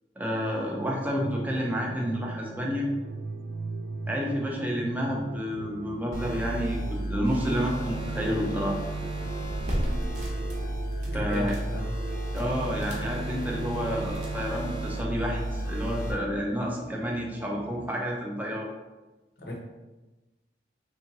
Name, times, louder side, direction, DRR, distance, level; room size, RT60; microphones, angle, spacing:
voice 1, 0.2-2.9 4.1-8.8 11.1-11.6 12.3-18.7, equal, 10° right, -1 dB, 0.5 m, -30 dB
sound 1, 0.8-17.9, right 4 dB, 85° right, 0.3 m, -41 dB
sound 2, 6.1-16.1, right 1 dB, 20° left, 0.7 m, -33 dB
sound 3, 9.4-14.9, equal, 40° right, 0.8 m, -37 dB
voice 2, 11.0-11.9 19.4-19.6, left 1 dB, 60° left, -1 dB, 0.7 m, -35 dB
3.5 x 2.8 x 2.8 m, 1.1 s
head